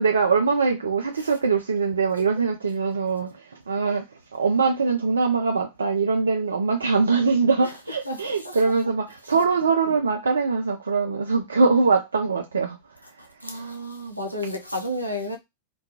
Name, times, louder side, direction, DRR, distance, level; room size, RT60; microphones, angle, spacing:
voice 1, 0.0-4.1 4.3-12.8 13.1-13.7, right 4 dB, 70° right, 0.3 m, -23 dB
voice 2, 8.1-8.6 13.2-15.4, left 1 dB, 85° left, 0.4 m, -32 dB
2.3 x 2.2 x 2.7 m
figure-of-eight pair, 90°, 0 cm